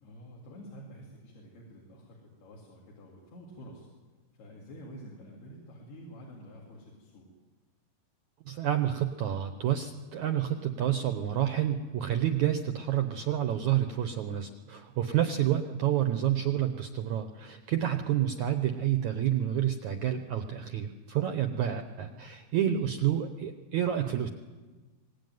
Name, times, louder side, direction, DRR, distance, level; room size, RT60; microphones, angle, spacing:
voice 1, 0.0-3.9 4.4-7.3 15.1-15.4, equal, 75° left, -3 dB, 5.4 m, -49 dB
voice 2, 8.5-24.3, right 11 dB, 70° right, 7 dB, 1.8 m, -29 dB
24.0 x 20.5 x 9.5 m, 1.3 s
omnidirectional pair, 4.6 m